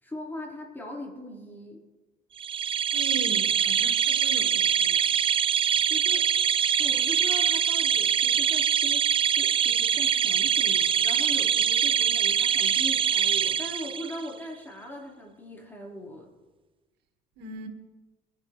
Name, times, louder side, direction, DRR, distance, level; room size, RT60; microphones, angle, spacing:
voice 1, 0.0-1.8 5.9-6.3 6.8-16.3, left 1 dB, 10° left, -3 dB, 4.5 m, -40 dB
sound 1, 2.4-14.3, right 8 dB, 30° right, 0.4 m, -24 dB
voice 2, 2.9-5.1 17.4-17.7, right 5 dB, 90° right, 4 dB, 1.8 m, -39 dB
23.5 x 11.5 x 3.3 m, 1.2 s
cardioid pair, 110°, 17 cm